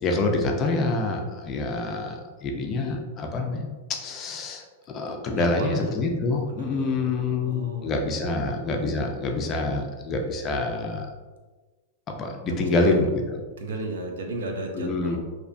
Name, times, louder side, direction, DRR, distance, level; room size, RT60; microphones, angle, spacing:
voice 1, 0.0-11.1 12.1-13.4 14.7-15.2, left 2 dB, 25° left, 2 dB, 0.4 m, -26 dB
voice 2, 5.3-5.9 6.5-7.9 8.2-8.3 12.4-13.0 13.6-15.2, right 2 dB, 90° right, 2 dB, 0.5 m, -34 dB
2.7 x 2.1 x 2.5 m, 1.3 s
supercardioid pair, 145°, 0 cm